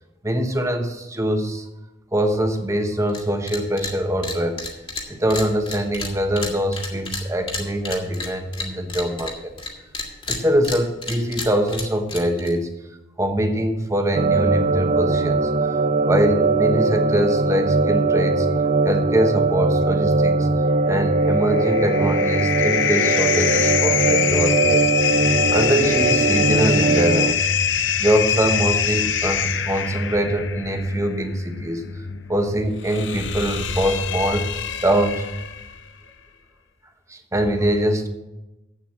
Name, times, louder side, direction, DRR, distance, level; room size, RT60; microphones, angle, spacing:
voice 1, 0.2-1.6 2.1-4.7 5.1-9.5 10.3-12.7 13.2-15.5 16.1-18.5 18.8-20.5 20.9-24.9 25.5-27.5 28.0-31.8 32.3-34.5 34.8-35.2 37.1-38.1, equal, 15° right, 6 dB, 1.1 m, -23 dB
sound 1, 3.1-3.2 3.5-3.9 4.2-9.7 9.9-12.5, left 3 dB, 30° left, 2.0 m, -31 dB
sound 2, 14.1-27.3, right 3 dB, 40° right, 0.4 m, -20 dB
sound 3, 21.2-35.8, left 7 dB, 65° left, 0.8 m, -24 dB
8.2 x 7.4 x 7.3 m, 0.99 s
head